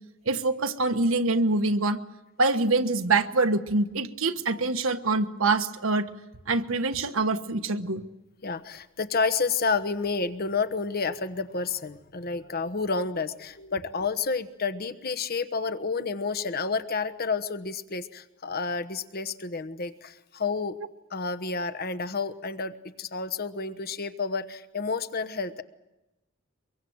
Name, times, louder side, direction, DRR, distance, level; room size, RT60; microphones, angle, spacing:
voice 1, 0.3-2.0 2.4-6.1 6.5-8.0, right 3 dB, 80° right, 8 dB, 1.3 m, -25 dB
voice 2, 8.4-20.8 21.1-25.6, left 4 dB, 50° left, 12 dB, 1.1 m, -30 dB
24.0 x 22.5 x 7.9 m, 1.0 s
head